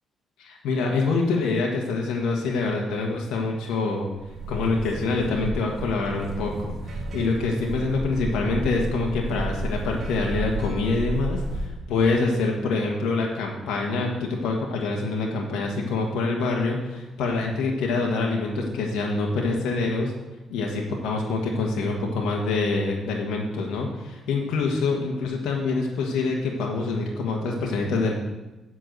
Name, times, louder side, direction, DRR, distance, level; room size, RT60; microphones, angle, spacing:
voice 1, 0.4-4.1 4.5-20.1 20.5-28.1, left 3 dB, 85° left, -1 dB, 1.5 m, -26 dB
sound 1, 4.2-11.7, right 2 dB, 45° right, 2.1 m, -32 dB
7.8 x 5.7 x 7.8 m, 1.0 s
cardioid pair, 90°, 0 cm